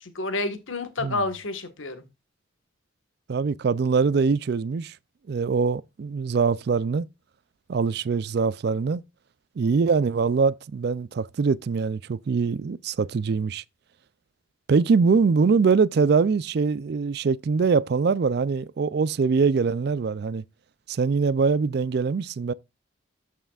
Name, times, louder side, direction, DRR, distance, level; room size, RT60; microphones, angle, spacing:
voice 1, 0.0-2.0, left 2 dB, 90° left, 1.5 m, -29 dB
voice 2, 3.3-4.9 5.3-7.0 7.7-9.0 9.6-13.6 14.7-20.4 20.9-22.5, right 5 dB, 55° right, 0.4 m, -23 dB
13.5 x 5.6 x 2.4 m
head